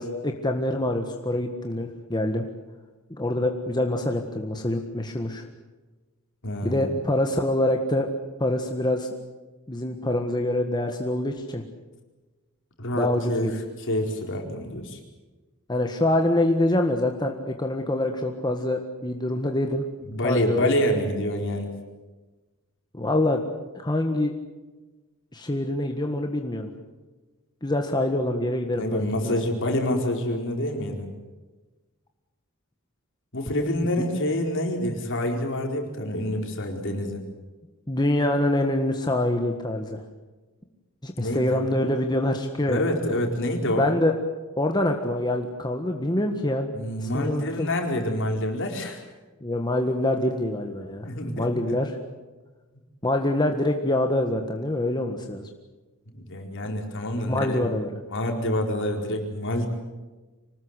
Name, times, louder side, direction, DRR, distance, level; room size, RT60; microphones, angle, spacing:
voice 1, 0.0-2.5 3.1-5.4 6.6-8.1 8.4-9.1 9.7-11.6 12.9-13.5 15.7-19.8 20.2-20.7 22.9-23.4 23.7-24.3 25.3-26.7 27.6-29.3 37.9-40.0 41.0-42.8 43.8-44.1 44.6-47.7 49.4-51.1 51.4-51.9 53.0-55.5 57.3-57.9, left 1 dB, 20° left, 4 dB, 1.6 m, -25 dB
voice 2, 6.4-6.9 12.8-15.0 20.1-21.7 28.8-31.1 33.3-37.2 41.2-41.6 42.7-43.9 46.7-49.0 51.0-51.8 56.1-57.7 58.1-59.7, left 1 dB, 60° left, 2 dB, 4.6 m, -27 dB
25.0 x 19.5 x 8.2 m, 1.2 s
head